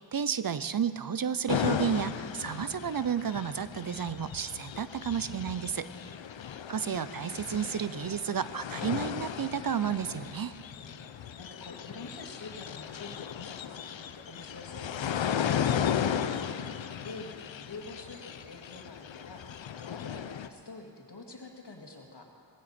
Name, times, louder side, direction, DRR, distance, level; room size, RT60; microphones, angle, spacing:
voice 1, 0.1-5.9 6.7-10.5, right 7 dB, 50° right, 14 dB, 0.5 m, -32 dB
sound 1, 1.5-20.5, left 8 dB, 90° left, 0.6 m, -35 dB
voice 2, 10.7-22.2, left 3 dB, 65° left, 1 dB, 2.1 m, -47 dB
18.5 x 15.0 x 4.3 m, 2.5 s
wide cardioid pair, 75°, 44 cm